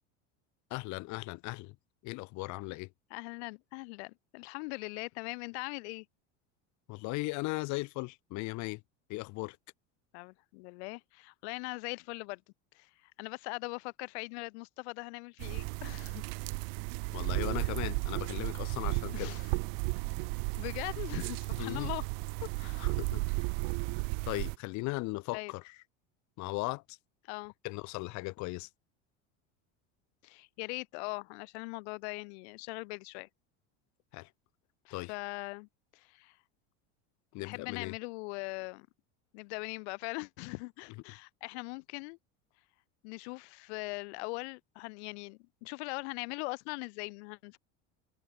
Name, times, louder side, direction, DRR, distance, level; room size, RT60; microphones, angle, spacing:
voice 1, 0.7-1.8 2.0-2.9 6.9-8.8 9.1-9.6 17.1-19.3 21.6-21.9 22.8-23.2 24.3-25.8 26.4-27.0 27.6-28.7 34.1-34.3 34.9-35.1 37.3-37.9, left 23 dB, 55° left, 3.7 m, -37 dB
voice 2, 3.1-6.0 10.1-12.4 12.7-16.2 19.1-19.5 20.6-22.1 22.4-22.9 25.3-25.5 27.2-27.5 30.2-33.3 34.8-36.4 37.4-38.9 39.3-42.2 43.0-47.6, left 30 dB, 75° left, 5.0 m, -41 dB
sound 1, 15.4-24.5, right 40 dB or more, 70° right, 2.4 m, -34 dB
supercardioid pair, 140°, 33 cm